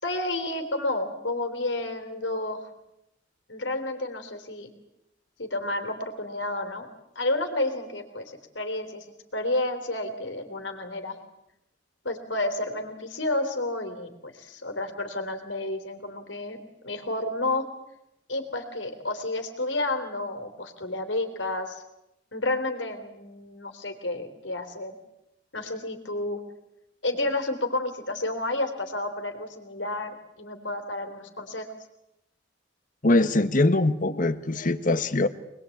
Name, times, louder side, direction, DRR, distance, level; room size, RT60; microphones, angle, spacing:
voice 1, 0.0-2.7 3.5-4.7 5.4-6.9 7.2-9.1 9.3-11.2 12.0-16.6 16.8-17.7 18.3-21.8 22.3-25.0 25.5-26.4 27.0-31.7, left 2 dB, 80° left, 7 dB, 3.5 m, -30 dB
voice 2, 33.0-35.3, left 2 dB, 45° left, 12 dB, 1.2 m, -22 dB
25.0 x 21.0 x 8.6 m, 0.87 s
head